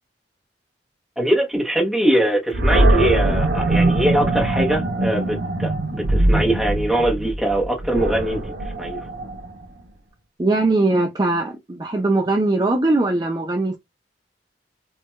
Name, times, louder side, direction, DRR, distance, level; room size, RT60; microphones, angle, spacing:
voice 1, 1.2-9.1, right 1 dB, ahead, 0.8 m, -22 dB
Animal, 2.5-9.6, right 2 dB, 85° right, 0.8 m, -21 dB
voice 2, 10.4-13.8, right 2 dB, 20° right, 0.4 m, -20 dB
4.4 x 2.2 x 2.2 m
head